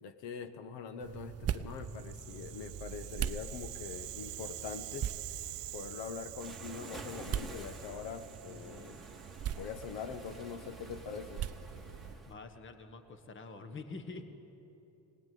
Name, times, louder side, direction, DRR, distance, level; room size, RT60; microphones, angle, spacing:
voice 1, 0.0-5.1 5.7-9.0 9.5-11.4, left 6 dB, 80° left, 9 dB, 1.4 m, -43 dB
sound 1, 1.0-12.1, right 9 dB, 35° right, 0.6 m, -42 dB
Rattle (instrument), 1.8-10.0, right 15 dB, 70° right, 0.9 m, -47 dB
Waves surf, 6.4-12.3, right 2 dB, ahead, 1.7 m, -50 dB
voice 2, 8.5-9.1 12.0-14.3, left 3 dB, 30° left, 8 dB, 1.4 m, -47 dB
23.0 x 19.5 x 9.4 m, 3.0 s
cardioid pair, 170°, 43 cm